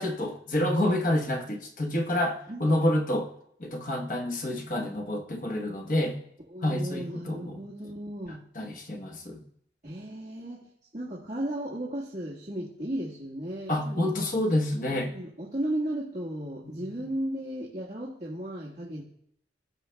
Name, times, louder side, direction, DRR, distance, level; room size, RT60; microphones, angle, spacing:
voice 1, 0.0-3.3 3.6-6.2 6.6-7.6 8.5-9.4 13.7-15.1 16.6-17.0, left 1 dB, 50° left, 3 dB, 1.1 m, -28 dB
voice 2, 6.5-8.4 9.8-10.6 10.9-14.1 14.9-19.0, right 1 dB, 40° right, -6 dB, 1.5 m, -35 dB
17.0 x 7.1 x 2.2 m, 0.70 s
head